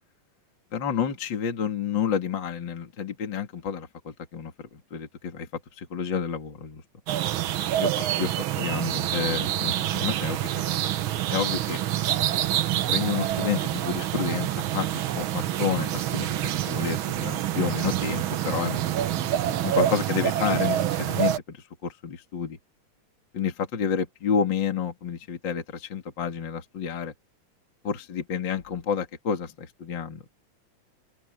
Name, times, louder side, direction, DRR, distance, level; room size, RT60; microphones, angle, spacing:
voice 1, 0.7-5.5 5.8-6.8 7.8-10.4 11.3-12.4 12.9-18.8 19.6-22.6 23.3-27.1 27.8-30.2, left 7 dB, 40° left, 2.8 m, -30 dB
sound 1, 7.1-21.4, right 12 dB, 90° right, 1.1 m, -27 dB
sound 2, 13.4-21.0, right 5 dB, 65° right, 4.1 m, -41 dB
open air
omnidirectional pair, 3.4 m